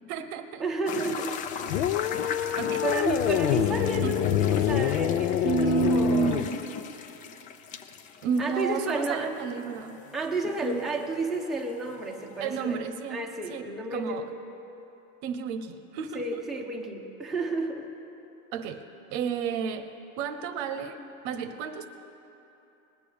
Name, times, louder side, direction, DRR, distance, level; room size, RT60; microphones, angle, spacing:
voice 1, 0.1-0.6 2.6-2.8 4.0-4.1 5.4-6.5 8.2-10.0 10.6-10.8 12.4-13.2 13.5-14.2 15.2-16.4 18.5-18.9 19.1-19.9 20.2-21.9, right 6 dB, 50° right, 9 dB, 0.9 m, -31 dB
voice 2, 0.6-1.4 2.8-6.5 8.4-9.3 10.1-12.8 13.1-14.4 16.1-17.9, right 2 dB, ahead, -1 dB, 0.8 m, -31 dB
sound 1, 0.8-12.8, left 6 dB, 20° left, 0.3 m, -39 dB
sound 2, 1.7-6.5, left 11 dB, 70° left, 0.7 m, -26 dB
19.5 x 7.0 x 6.6 m, 3.0 s
supercardioid pair, 130°, 43 cm